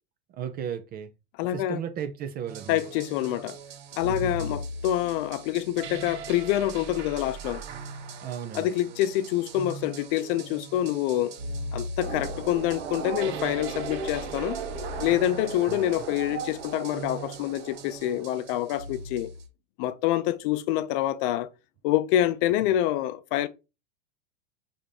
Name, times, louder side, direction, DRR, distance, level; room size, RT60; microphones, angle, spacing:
voice 1, 0.3-1.1 1.5-2.8 4.0-4.6 8.2-8.7 15.7-15.9, right 9 dB, 30° right, 0.4 m, -35 dB
voice 2, 1.4-1.8 2.7-3.6 4.0-7.6 8.5-11.4 11.7-14.6 15.0-19.3 19.8-21.5 21.8-23.5, left 13 dB, 55° left, 0.5 m, -26 dB
sound 1, 2.5-19.5, right 2 dB, 65° right, 1.9 m, -40 dB
sound 2, 12.0-18.3, right 5 dB, 85° right, 1.1 m, -36 dB
5.0 x 2.7 x 3.5 m
hypercardioid pair, 115°, 32 cm